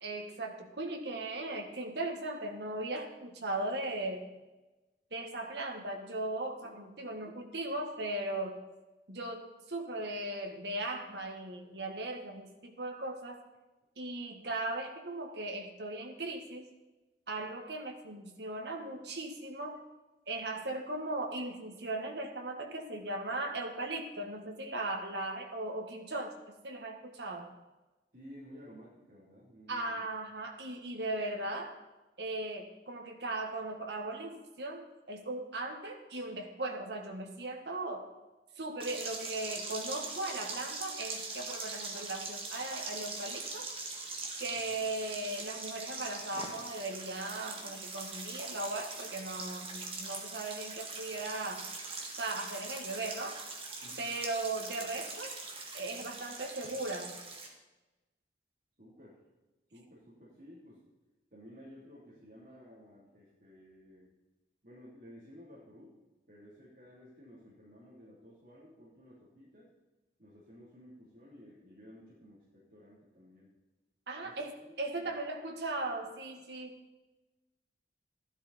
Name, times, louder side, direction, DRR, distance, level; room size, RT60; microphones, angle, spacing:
voice 1, 0.0-4.3 5.1-8.6 9.1-13.4 14.0-16.7 17.3-19.8 20.3-26.4 26.6-27.5 29.7-31.8 32.2-38.1 38.6-43.7 44.4-51.7 52.0-53.4 54.0-55.4 55.7-57.2 74.1-76.8, right 2 dB, 80° right, 3 dB, 1.7 m, -38 dB
voice 2, 28.1-30.0 44.5-44.6 53.8-54.1 58.8-59.2 59.7-60.8 61.3-64.1 64.6-66.0 66.3-69.7 70.2-73.5 74.2-74.7 75.0-75.1, equal, 55° right, -8 dB, 3.2 m, -54 dB
sound 1, 38.8-57.5, right 3 dB, 30° right, 1.8 m, -42 dB
13.5 x 11.5 x 4.3 m, 1.1 s
head